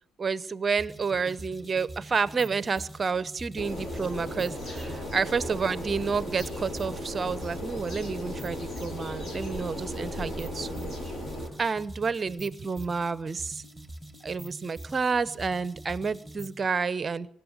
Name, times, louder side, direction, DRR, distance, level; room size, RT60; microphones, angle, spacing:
voice 1, 0.2-10.9 11.6-13.6 14.2-17.3, right 5 dB, 30° right, 19 dB, 0.8 m, -30 dB
sound 1, 0.8-16.6, right 1 dB, 5° left, 2.7 m, -45 dB
sound 2, 3.6-11.5, left 1 dB, 45° left, 7.0 m, -36 dB
24.0 x 11.5 x 9.6 m, 0.75 s
figure-of-eight pair, 55°, 0 cm